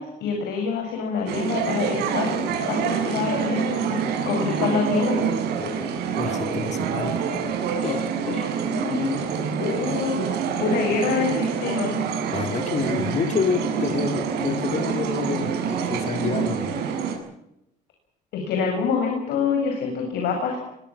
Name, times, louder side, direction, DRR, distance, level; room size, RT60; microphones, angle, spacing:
voice 1, 0.0-5.2 8.6-9.2 9.6-10.2 10.6-11.9 18.3-20.6, left 5 dB, 80° left, 2 dB, 7.1 m, -26 dB
sound 1, 1.3-17.2, right 7 dB, 80° right, 7.2 m, -26 dB
voice 2, 5.6-7.2 7.8-8.8 10.8-10.9 12.3-16.8, left 5 dB, 45° left, 7 dB, 4.0 m, -29 dB
23.5 x 22.5 x 7.6 m, 0.83 s
cardioid pair, 110°, 17 cm